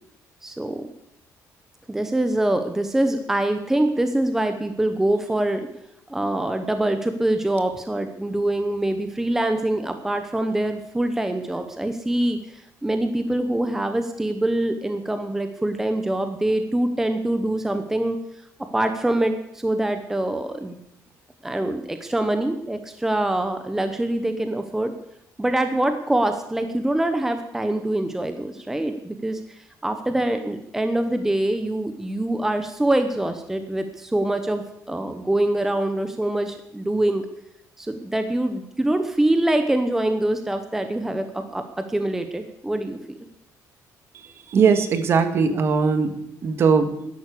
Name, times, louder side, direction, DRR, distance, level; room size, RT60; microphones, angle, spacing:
voice 1, 0.4-0.9 1.9-5.7 6.1-18.2 18.7-20.8 21.4-24.9 25.4-37.3 37.8-41.6 41.9-43.0, right 1 dB, 5° right, 8 dB, 0.9 m, -24 dB
voice 2, 44.1-46.9, right 5 dB, 40° right, 9 dB, 1.8 m, -20 dB
13.0 x 11.5 x 8.4 m, 0.78 s
cardioid pair, 170°, 6 cm